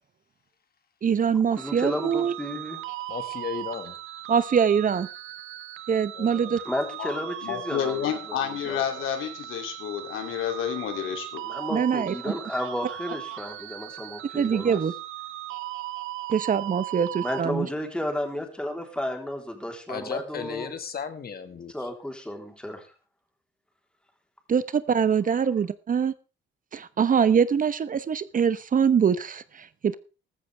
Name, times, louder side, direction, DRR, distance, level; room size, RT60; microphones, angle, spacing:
voice 1, 1.0-2.3 4.3-5.1 5.9-6.6 11.7-12.1 14.3-14.9 16.3-17.7 24.5-26.1 26.7-30.0, right 7 dB, 45° right, 15 dB, 0.9 m, -23 dB
voice 2, 1.6-2.8 6.7-9.0 11.4-14.8 17.2-20.7 21.7-22.8, left 1 dB, 5° left, 3 dB, 3.6 m, -33 dB
sound 1, 1.6-17.4, right 14 dB, 90° right, 0.9 m, -38 dB
voice 3, 3.1-4.0 6.1-6.6 19.9-21.7, left 6 dB, 50° left, 9 dB, 1.9 m, -35 dB
voice 4, 7.4-11.4, left 9 dB, 90° left, 5 dB, 2.9 m, -30 dB
14.5 x 13.5 x 3.5 m, 0.33 s
cardioid pair, 90°, 20 cm